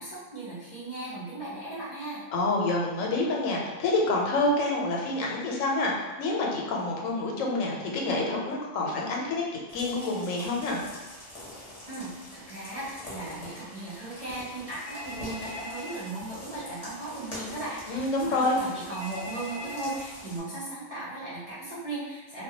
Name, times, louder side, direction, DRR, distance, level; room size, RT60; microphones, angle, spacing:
voice 1, 0.0-2.2 11.9-22.4, right 2 dB, 45° right, -10 dB, 0.5 m, -37 dB
voice 2, 2.3-9.4 9.7-10.8 17.9-18.6, left 2 dB, 90° left, -2 dB, 1.0 m, -27 dB
sound 1, 9.7-20.4, left 1 dB, 30° left, 0.7 m, -44 dB
Telephone, 14.9-16.0 18.9-20.0, left 1 dB, 65° left, 0.9 m, -40 dB
2.2 x 2.1 x 2.7 m, 1.2 s
omnidirectional pair, 1.3 m